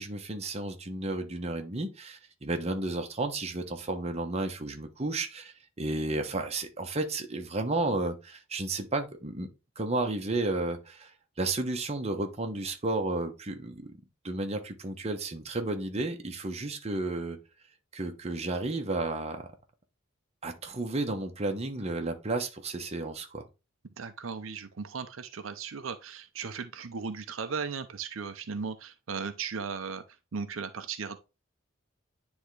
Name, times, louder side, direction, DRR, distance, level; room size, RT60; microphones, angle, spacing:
voice 1, 0.0-9.5 9.8-11.1 11.4-13.9 14.2-17.4 17.9-19.5 20.4-23.4, right 2 dB, 30° right, 1.0 m, -32 dB
voice 2, 24.0-30.0 30.3-31.2, right 5 dB, 70° right, 0.6 m, -36 dB
9.8 x 3.5 x 3.2 m
head